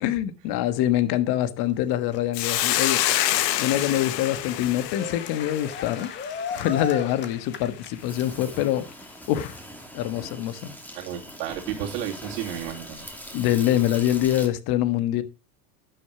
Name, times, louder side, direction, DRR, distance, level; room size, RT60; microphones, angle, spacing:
voice 1, 0.0-3.0 3.6-6.1 6.5-8.9 9.3-9.6 9.9-10.7 13.3-15.2, left 12 dB, 50° left, 1.5 m, -25 dB
Cheering, 1.6-8.6, left 5 dB, 20° left, 1.5 m, -37 dB
Hiss, 2.3-6.8, left 14 dB, 75° left, 1.3 m, -27 dB
Insect, 4.2-14.5, equal, 5° left, 2.4 m, -42 dB
voice 2, 10.9-13.1, right 10 dB, 70° right, 2.7 m, -32 dB
12.0 x 6.9 x 4.9 m
supercardioid pair, 120°, 50 cm